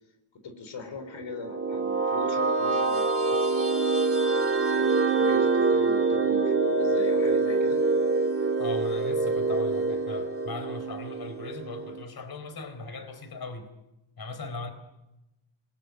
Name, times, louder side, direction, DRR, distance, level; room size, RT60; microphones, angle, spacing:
voice 1, 0.3-3.8 4.7-7.8, left 4 dB, 80° left, 7 dB, 4.5 m, -41 dB
sound 1, 1.2-12.0, right 3 dB, 30° right, 2.6 m, -25 dB
voice 2, 8.6-13.7 14.2-14.7, left 3 dB, 55° left, 9 dB, 4.1 m, -39 dB
27.5 x 21.0 x 9.4 m, 0.97 s
wide cardioid pair, 105°, 45 cm